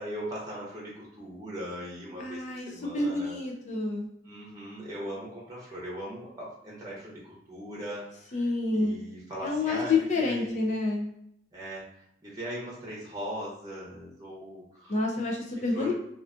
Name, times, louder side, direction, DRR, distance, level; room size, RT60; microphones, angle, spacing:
voice 1, 0.0-3.4 4.2-10.6 11.5-11.8 12.2-15.0 15.6-15.9, equal, 20° right, -5 dB, 0.7 m, -39 dB
voice 2, 2.2-2.7 2.9-4.1 8.3-8.9 9.4-11.1 14.9-15.9, left 3 dB, 40° left, 0 dB, 0.4 m, -28 dB
2.4 x 2.4 x 2.4 m, 0.73 s
head